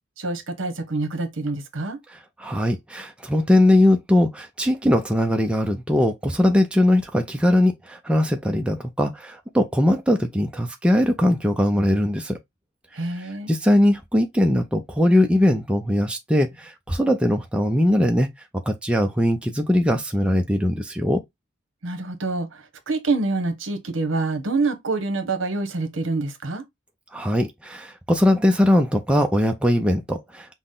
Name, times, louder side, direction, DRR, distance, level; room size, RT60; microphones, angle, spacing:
voice 1, 0.2-2.0 12.9-13.5 21.8-26.6, right 3 dB, 65° right, 1.0 m, -26 dB
voice 2, 2.1-12.4 13.1-18.3 18.7-21.2 27.1-30.5, left 1 dB, 5° right, 0.5 m, -20 dB
5.9 x 2.1 x 3.7 m
head